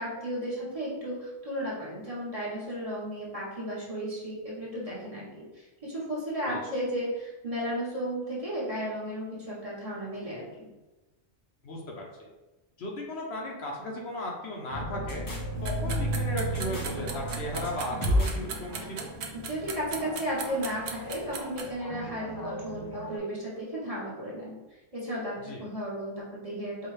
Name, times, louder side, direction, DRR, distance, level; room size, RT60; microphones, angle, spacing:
voice 1, 0.0-5.3 5.5-10.7 19.4-24.6 24.9-26.9, equal, 30° right, -7 dB, 1.2 m, -34 dB
voice 2, 11.6-12.3 12.8-15.2 15.6-19.1 25.4-25.6, left 1 dB, 65° left, -1 dB, 1.0 m, -36 dB
sound 1, 14.7-23.2, right 1 dB, 25° left, 0.6 m, -33 dB
sound 2, 15.6-21.6, right 6 dB, 70° right, 0.8 m, -37 dB
4.6 x 2.4 x 3.2 m, 1.1 s
omnidirectional pair, 1.2 m